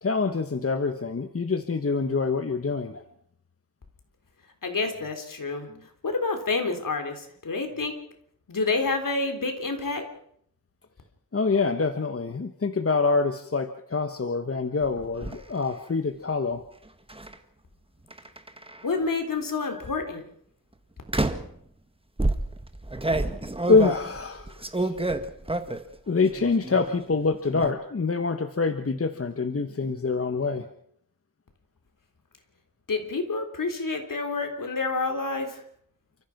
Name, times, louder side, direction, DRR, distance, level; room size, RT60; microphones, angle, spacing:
voice 1, 0.0-3.0 5.7-5.8 11.3-16.6 23.7-24.5 24.8-25.0 26.1-30.7, left 4 dB, 40° left, 8 dB, 1.3 m, -25 dB
voice 2, 4.6-5.7 6.0-8.0 8.5-10.0 18.8-20.2 32.9-35.6, left 3 dB, 65° left, 5 dB, 3.8 m, -28 dB
sound 1, 14.8-15.4 17.1-17.3 18.1-18.9 19.7-20.0 21.1-21.6 22.2-25.9 26.3-26.9 27.1-27.7, right 2 dB, 15° right, 1.6 m, -29 dB
29.5 x 14.5 x 6.0 m, 0.67 s
wide cardioid pair, 75°, 35 cm